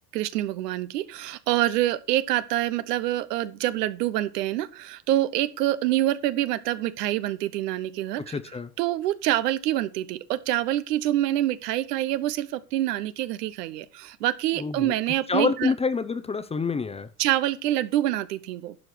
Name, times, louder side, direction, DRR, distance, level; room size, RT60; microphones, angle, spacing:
voice 1, 0.1-8.4 8.8-15.7 17.2-18.8, right 14 dB, 85° right, 1.0 m, -26 dB
voice 2, 8.2-8.7 14.6-17.1, left 4 dB, 15° left, 0.6 m, -27 dB
11.5 x 5.1 x 6.0 m
supercardioid pair, 120°, 46 cm